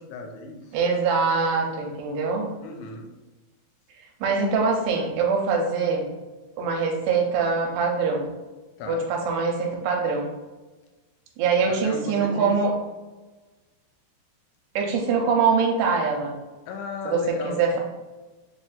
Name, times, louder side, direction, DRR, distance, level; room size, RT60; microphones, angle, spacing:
voice 1, 0.0-0.8 2.6-3.1 8.8-9.0 11.7-12.6 15.1-15.2 16.7-17.8, left 4 dB, 85° left, 3 dB, 2.7 m, -35 dB
voice 2, 0.7-2.5 4.2-6.1 6.6-8.3 8.9-10.3 11.4-12.7 14.8-16.4 17.1-17.8, right 5 dB, 80° right, 0 dB, 2.6 m, -23 dB
6.9 x 2.5 x 2.3 m, 1.2 s
omnidirectional pair, 4.8 m